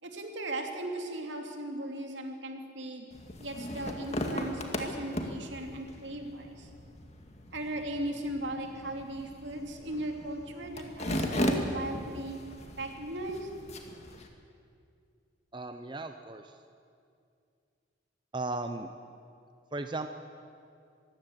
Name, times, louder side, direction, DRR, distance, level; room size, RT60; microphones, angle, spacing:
voice 1, 0.0-3.1 3.4-6.7 7.5-12.4 12.8-13.5, right 1 dB, 75° right, 3 dB, 2.8 m, -37 dB
sound 1, 3.1-14.3, left 1 dB, 35° left, 2.0 m, -37 dB
voice 2, 15.5-16.5 18.3-18.9 19.7-20.1, right 2 dB, 25° right, 7 dB, 0.7 m, -36 dB
23.0 x 16.0 x 8.1 m, 2.4 s
head